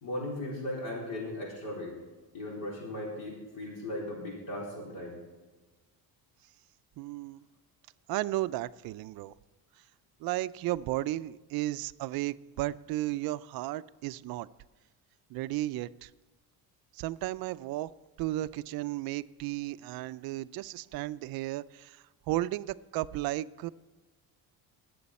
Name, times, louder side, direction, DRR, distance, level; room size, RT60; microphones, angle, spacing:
voice 1, 0.0-1.9 2.3-5.2, left 1 dB, 60° left, 4.1 m, -37 dB
voice 2, 7.0-7.4 8.1-9.3 10.2-14.5 15.3-16.1 16.9-17.9 18.2-23.7, right 16 dB, 65° right, 0.5 m, -34 dB
21.0 x 7.9 x 4.2 m
cardioid pair, 170°, 38 cm